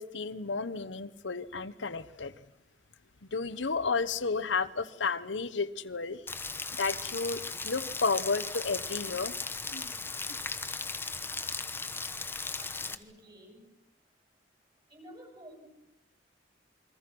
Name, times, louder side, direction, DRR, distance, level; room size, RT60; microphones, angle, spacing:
voice 1, 0.0-2.3 3.3-6.2 6.8-9.3 9.7-9.9, left 4 dB, 85° left, 12 dB, 1.0 m, -32 dB
Rain, 6.3-12.9, left 3 dB, 15° left, 1.2 m, -37 dB
voice 2, 12.6-13.6 14.9-15.7, equal, 30° right, 4 dB, 7.8 m, -52 dB
29.0 x 23.0 x 6.2 m, 0.94 s
head